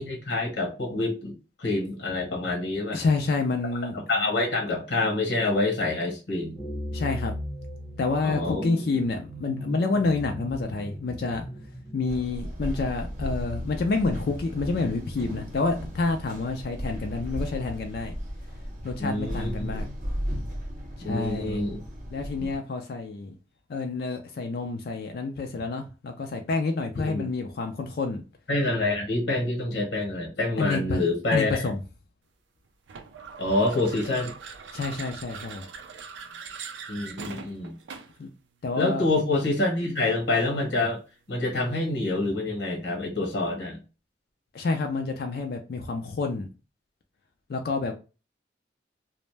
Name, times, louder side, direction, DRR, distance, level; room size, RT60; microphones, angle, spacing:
voice 1, 0.0-1.3 1.6-3.0 3.9-6.6 8.2-8.6 19.0-19.7 21.0-21.8 27.0-27.3 28.5-31.7 33.4-34.3 36.9-37.7 38.8-41.0 41.3-43.8, left 2 dB, 75° left, 1.0 m, -27 dB
voice 2, 2.9-4.0 6.9-7.3 8.0-11.4 11.9-18.1 18.8-19.9 21.0-21.6 22.1-23.4 23.7-28.2 30.6-31.0 31.3-31.8 34.7-35.6 38.2-38.3 38.6-39.0 44.5-46.5 47.5-48.0, left 3 dB, 55° left, 0.3 m, -28 dB
sound 1, 6.6-13.2, equal, 15° right, 0.8 m, -38 dB
sound 2, 12.1-22.6, equal, 45° right, 0.7 m, -35 dB
sound 3, 32.9-38.3, right 5 dB, 90° right, 0.4 m, -41 dB
2.5 x 2.1 x 3.1 m
head